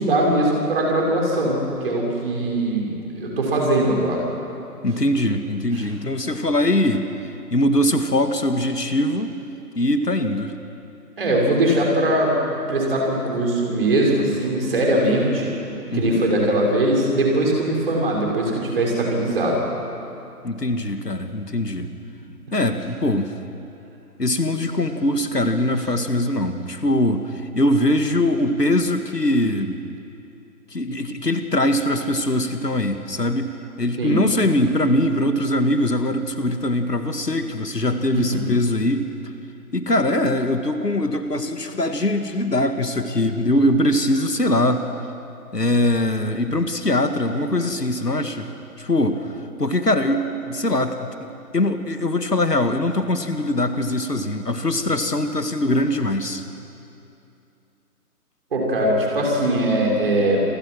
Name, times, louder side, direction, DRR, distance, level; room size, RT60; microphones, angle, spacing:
voice 1, 0.0-4.2 5.7-5.9 11.2-12.3 12.7-15.5 15.9-19.6 34.0-34.2 38.1-38.4 58.5-60.4, right 1 dB, 35° right, -2 dB, 5.9 m, -21 dB
voice 2, 4.8-7.1 7.5-9.3 9.8-10.5 15.9-16.2 20.4-21.9 22.5-23.3 24.2-29.8 30.7-39.1 39.7-44.9 45.5-48.5 48.8-51.3 51.5-56.4, left 1 dB, 80° left, 7 dB, 2.1 m, -22 dB
28.0 x 20.5 x 6.3 m, 2.7 s
figure-of-eight pair, 150°, 47 cm